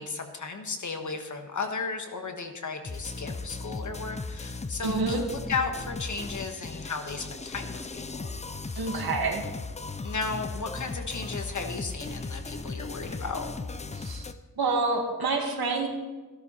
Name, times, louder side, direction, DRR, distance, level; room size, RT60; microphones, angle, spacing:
voice 1, 0.0-5.2 5.5-8.3 8.7-8.8 10.0-13.5, left 4 dB, 55° left, 5 dB, 1.4 m, -35 dB
sound 1, 2.9-14.3, left 3 dB, 20° left, 0.5 m, -37 dB
voice 2, 4.8-5.2 8.8-9.4 13.9-14.2 14.6-15.9, right 3 dB, 90° right, 1 dB, 2.4 m, -27 dB
14.0 x 12.5 x 4.3 m, 1.3 s
wide cardioid pair, 170°, 36 cm